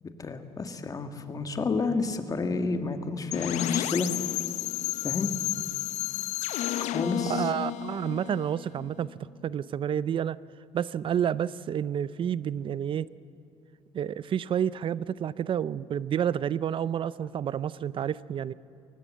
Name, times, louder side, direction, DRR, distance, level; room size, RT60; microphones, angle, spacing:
voice 1, 0.0-4.1 5.0-5.3 6.9-7.5, left 4 dB, 30° left, 7 dB, 1.8 m, -30 dB
sound 1, 3.3-9.1, left 13 dB, 75° left, 0.9 m, -32 dB
voice 2, 7.3-9.1 9.4-10.4 10.7-13.1 13.9-18.5, right 9 dB, 45° right, 18 dB, 0.6 m, -29 dB
23.5 x 19.0 x 7.5 m, 2.8 s
cardioid pair, 115°, 12 cm